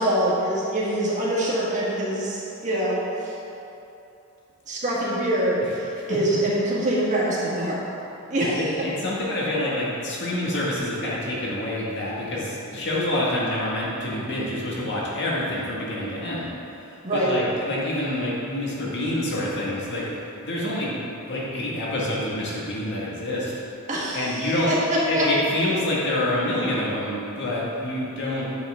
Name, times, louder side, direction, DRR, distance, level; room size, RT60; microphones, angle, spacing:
voice 1, 0.0-3.3 4.7-7.8 8.3-8.9 17.0-17.4 23.9-25.3, right 1 dB, 35° right, -6 dB, 1.9 m, -24 dB
voice 2, 5.6-6.2 8.4-16.5 17.1-20.1 20.4-23.5 24.1-24.7 25.1-28.5, left 1 dB, 55° left, -5 dB, 1.9 m, -27 dB
9.3 x 7.4 x 3.7 m, 2.9 s
head